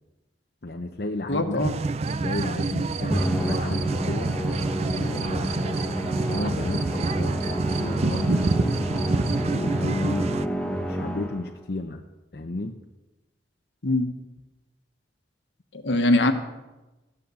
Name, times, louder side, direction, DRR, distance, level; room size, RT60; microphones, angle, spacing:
voice 1, 0.6-1.6 2.2-4.3 4.9-5.9 6.3-8.8 9.4-10.3 10.7-12.0 12.3-12.8, left 2 dB, 55° left, 3 dB, 0.8 m, -33 dB
voice 2, 1.3-1.7 13.8-14.1 15.7-16.3, left 2 dB, 75° left, 7 dB, 1.3 m, -22 dB
sound 1, 1.6-10.5, right 3 dB, 35° right, 0.4 m, -29 dB
sound 2, 2.1-9.6, right 3 dB, 65° right, 0.8 m, -31 dB
Musical instrument, 3.1-11.6, equal, 5° left, 0.9 m, -29 dB
14.0 x 9.6 x 7.0 m, 1.1 s
head